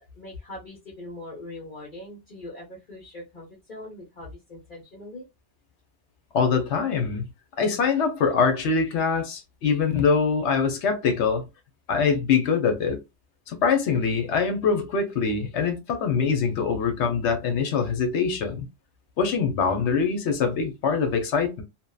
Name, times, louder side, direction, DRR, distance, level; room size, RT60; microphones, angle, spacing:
voice 1, 0.1-5.3, left 1 dB, 45° left, 1.1 m, -41 dB
voice 2, 6.3-7.3 7.6-11.5 11.9-13.0 13.5-18.7 19.2-21.6, left 5 dB, 80° left, 1.0 m, -23 dB
2.7 x 2.1 x 2.2 m
omnidirectional pair, 1.2 m